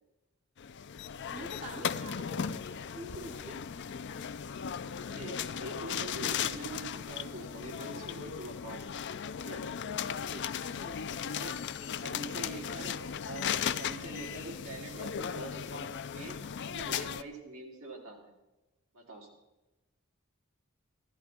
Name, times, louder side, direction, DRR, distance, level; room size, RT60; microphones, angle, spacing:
sound 1, 0.6-17.2, left 8 dB, 55° left, 0.5 m, -37 dB
voice 1, 1.3-3.6 10.3-11.0, right 2 dB, 35° right, 4 dB, 1.0 m, -46 dB
voice 2, 5.1-9.0 9.4-9.7 11.2-16.4 16.7-18.3 18.9-19.3, right 2 dB, 85° right, -2 dB, 3.9 m, -45 dB
15.0 x 13.0 x 4.4 m, 1.0 s
head